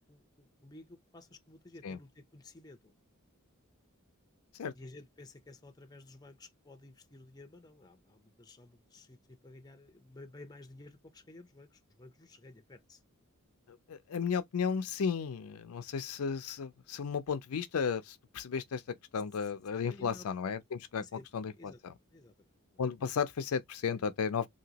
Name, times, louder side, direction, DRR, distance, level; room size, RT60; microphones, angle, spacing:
voice 1, 0.0-2.9 4.7-9.2 9.4-13.0 19.8-20.3 21.0-21.3 21.6-21.8 22.1-22.8, left 2 dB, 20° left, 0.5 m, -53 dB
voice 2, 13.9-18.8 19.1-21.9 22.8-24.5, left 6 dB, 70° left, 0.4 m, -34 dB
2.9 x 2.8 x 2.8 m
head